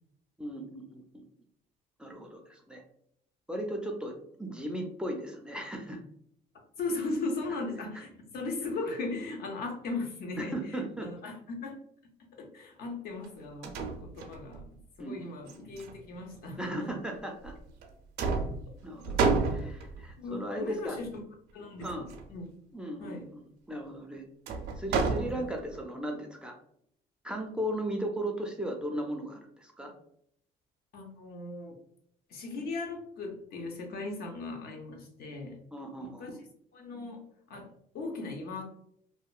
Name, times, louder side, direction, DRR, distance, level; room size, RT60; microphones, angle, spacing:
voice 1, 0.4-1.2 2.0-2.8 3.5-6.0 10.4-11.1 15.0-15.3 16.6-17.5 18.8-21.0 21.8-22.1 22.7-23.4 23.7-24.2 24.8-26.6 27.2-29.9 35.7-36.2, right 1 dB, 5° right, 1 dB, 0.4 m, -36 dB
voice 2, 6.8-11.8 12.4-14.6 15.0-16.9 19.0-19.4 20.2-21.2 21.5-22.5 23.0-23.3 25.2-25.5 30.9-31.7 32.3-35.6 36.0-36.3 36.7-38.6, left 3 dB, 65° left, 2 dB, 0.7 m, -38 dB
sound 1, 13.2-13.3 13.6-14.7 15.5-16.5 17.4-17.9 18.2-20.1 21.8-22.3 24.5-25.8, right 4 dB, 75° right, 0.5 m, -31 dB
2.8 x 2.1 x 2.3 m, 0.68 s
cardioid pair, 110°, 17 cm